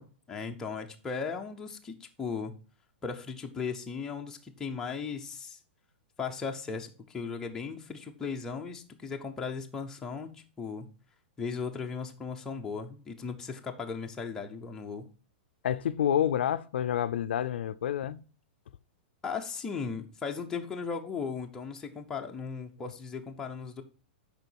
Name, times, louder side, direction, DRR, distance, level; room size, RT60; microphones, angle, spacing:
voice 1, 0.3-2.5 3.0-5.6 6.2-10.3 10.6-10.9 11.4-15.1 19.2-23.8, left 5 dB, 10° left, 0.5 m, -37 dB
voice 2, 15.6-18.2, left 10 dB, 80° left, 0.4 m, -28 dB
6.7 x 4.8 x 4.5 m
supercardioid pair, 175°, 6 cm